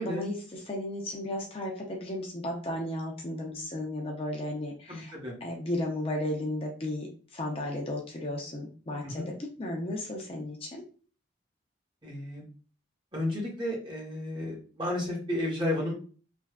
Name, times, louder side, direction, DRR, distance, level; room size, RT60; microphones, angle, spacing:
voice 1, 0.0-5.1 5.4-10.8, left 1 dB, 30° left, 0 dB, 0.4 m, -34 dB
voice 2, 4.9-5.4 9.0-9.3 12.0-12.4 13.1-15.9, left 1 dB, 25° right, -2 dB, 0.9 m, -32 dB
3.4 x 2.3 x 2.3 m, 0.40 s
head